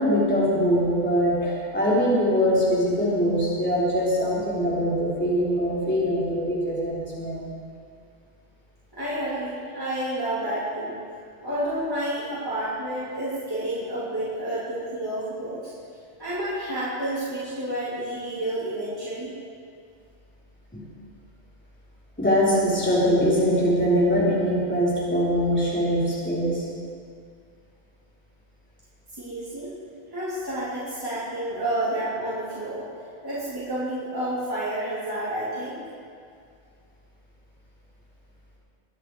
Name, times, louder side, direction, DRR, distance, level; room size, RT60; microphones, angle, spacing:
voice 1, 0.0-7.4 20.7-20.8 22.2-26.6, equal, 10° left, -8 dB, 3.6 m, -22 dB
voice 2, 8.9-10.9 11.4-15.7 16.2-19.3 29.2-29.7 30.1-32.9 33.2-35.8, right 1 dB, 20° right, -11 dB, 3.2 m, -30 dB
22.0 x 9.9 x 4.8 m, 2.2 s
omnidirectional pair, 1.2 m